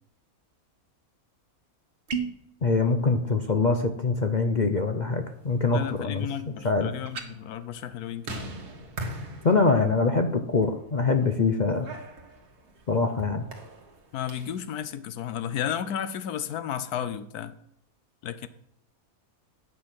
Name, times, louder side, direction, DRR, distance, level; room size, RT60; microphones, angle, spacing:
sound 1, 2.1-2.5 7.0-7.3, right 6 dB, 40° right, 1.3 m, -31 dB
voice 1, 2.6-6.3 6.6-6.9 9.4-11.9 12.9-13.4, left 3 dB, 45° left, 0.6 m, -24 dB
voice 2, 3.2-3.7 5.7-8.6 14.1-17.5 18.2-18.5, left 9 dB, 80° left, 1.2 m, -33 dB
sound 2, 5.6-14.7, right 2 dB, 90° right, 2.2 m, -43 dB
9.5 x 7.6 x 6.0 m
omnidirectional pair, 1.6 m